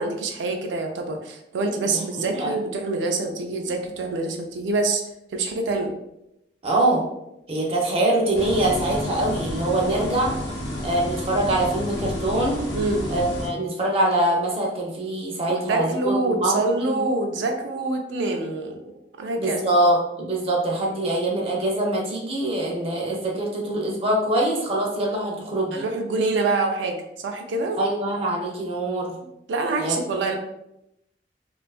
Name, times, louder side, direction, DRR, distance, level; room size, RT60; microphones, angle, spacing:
voice 1, 0.0-5.0 5.3-5.9 12.7-13.0 15.5-18.8 19.2-19.6 25.7-27.8 29.5-30.4, right 3 dB, 90° right, 3 dB, 0.4 m, -26 dB
voice 2, 2.2-2.5 6.6-7.1 7.5-10.3 10.8-12.6 13.1-17.0 19.4-25.8 27.8-29.1 29.8-30.1, right 1 dB, 35° right, -1 dB, 0.5 m, -24 dB
sound 1, 8.3-13.5, left 1 dB, 70° left, 0.7 m, -30 dB
2.5 x 2.3 x 2.3 m, 0.84 s
head